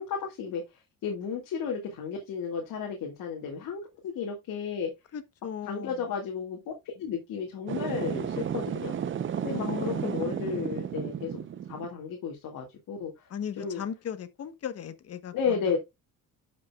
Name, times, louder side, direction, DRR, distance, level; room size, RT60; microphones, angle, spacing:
voice 1, 0.0-4.9 5.6-8.9 9.4-13.3 13.6-13.8 15.3-15.8, left 6 dB, 70° left, 2.1 m, -33 dB
voice 2, 5.1-6.1 9.4-10.4 13.3-15.8, left 8 dB, 45° left, 1.1 m, -37 dB
sound 1, 7.7-11.9, right 9 dB, 35° right, 0.7 m, -33 dB
11.5 x 5.5 x 2.3 m
cardioid pair, 125°, 34 cm